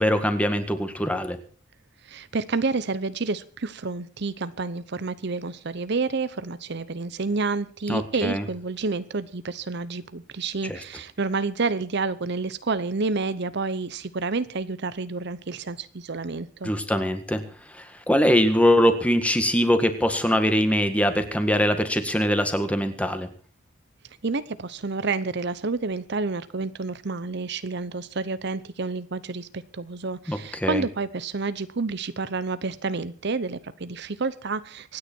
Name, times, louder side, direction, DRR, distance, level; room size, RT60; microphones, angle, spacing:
voice 1, 0.0-1.4 7.9-8.4 10.7-10.8 16.6-17.4 17.7-23.3 30.3-30.8, equal, 5° left, 8 dB, 1.8 m, -22 dB
voice 2, 2.0-16.7 24.2-35.0, right 3 dB, 55° right, 14 dB, 0.8 m, -29 dB
25.0 x 9.9 x 4.5 m, 0.41 s
head